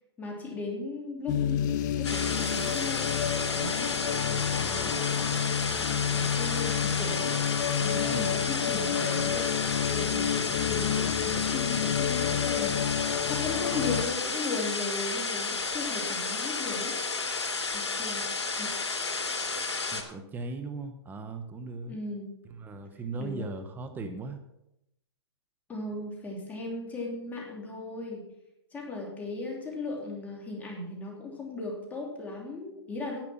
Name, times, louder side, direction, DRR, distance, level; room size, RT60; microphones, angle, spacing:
voice 1, 0.2-3.1 3.5-7.4 7.8-9.5 9.9-13.0 13.3-17.0 17.7-18.3 18.6-18.7 21.9-22.4 23.2-23.5 25.7-28.2 28.7-33.2, left 3 dB, 10° left, -1 dB, 3.0 m, -37 dB
sound 1, 1.3-14.0, left 9 dB, 45° left, 0.7 m, -30 dB
sound 2, 2.0-20.0, left 4 dB, 90° left, 3.1 m, -32 dB
voice 2, 8.0-8.4 19.9-22.0 22.4-24.4, right 3 dB, 15° right, 8 dB, 1.1 m, -38 dB
10.5 x 8.5 x 5.9 m, 0.83 s
hypercardioid pair, 135°, 14 cm